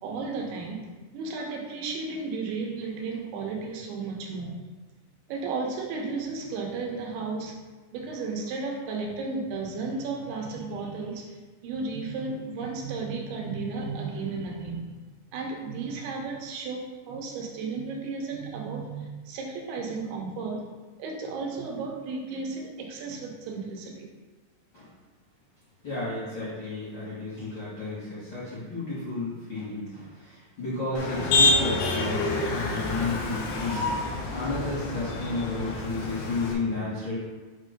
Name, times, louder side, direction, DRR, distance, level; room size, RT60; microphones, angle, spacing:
voice 1, 0.0-0.8 1.1-4.6 5.3-7.6 7.9-11.4 11.6-14.8 15.3-20.6 21.0-24.1, right 4 dB, 75° right, 1 dB, 2.6 m, -34 dB
voice 2, 25.8-37.1, left 3 dB, 45° left, -11 dB, 1.6 m, -32 dB
Motor vehicle (road), 31.0-36.5, left 2 dB, 75° left, 2.7 m, -27 dB
7.5 x 3.0 x 5.1 m, 1.3 s
omnidirectional pair, 4.8 m